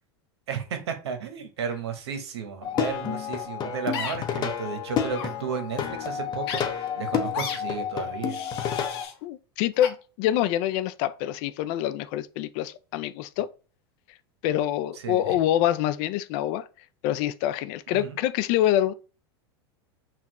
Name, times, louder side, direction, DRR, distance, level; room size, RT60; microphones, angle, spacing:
voice 1, 0.5-8.4 15.0-15.2 17.9-18.2, right 6 dB, 85° right, 1.0 m, -33 dB
Plucked string instrument, 2.6-9.0, left 8 dB, 30° left, 0.7 m, -30 dB
sound 1, 3.9-4.2 5.1-5.3 6.4-6.6 7.3-7.6 8.3-9.1 9.8-9.9, left 7 dB, 70° left, 0.8 m, -33 dB
voice 2, 9.2-13.5 14.4-16.7 17.0-18.9, left 12 dB, 55° left, 0.4 m, -26 dB
5.8 x 2.4 x 2.9 m
hypercardioid pair, 110°, 14 cm